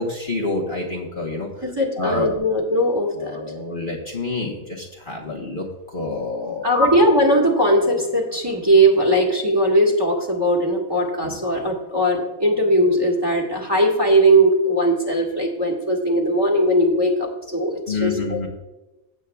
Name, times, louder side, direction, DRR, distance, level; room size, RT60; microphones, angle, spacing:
voice 1, 0.0-1.5 2.0-2.4 3.2-5.6 5.9-6.9 11.2-11.3 17.9-18.5, left 3 dB, 40° left, -2 dB, 1.2 m, -27 dB
voice 2, 1.6-3.4 6.6-18.4, right 1 dB, 15° right, 0 dB, 1.6 m, -19 dB
16.0 x 8.2 x 2.3 m, 1.0 s
omnidirectional pair, 1.5 m